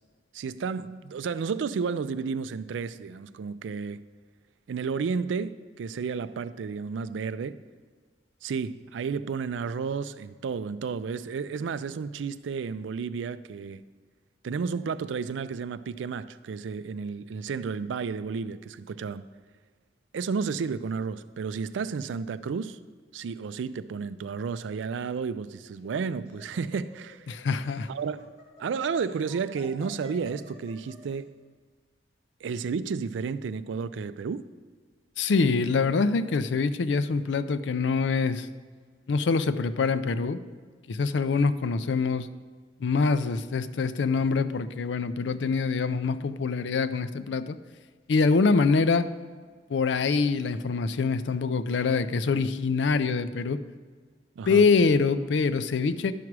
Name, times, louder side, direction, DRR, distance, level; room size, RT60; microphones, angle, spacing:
voice 1, 0.3-4.0 4.7-7.6 8.4-13.8 14.4-19.2 20.1-22.8 23.1-27.3 27.9-28.3 28.6-31.3 32.4-34.5 54.4-54.6, right 5 dB, 85° right, 0.4 m, -32 dB
Laughter, 25.6-31.1, equal, 35° left, 2.2 m, -51 dB
voice 2, 27.3-27.9 35.2-38.5 39.1-40.4 40.9-42.3 42.8-47.6 48.1-49.1 49.7-53.6 54.5-56.1, left 4 dB, 70° left, 0.4 m, -25 dB
11.0 x 6.0 x 4.7 m
head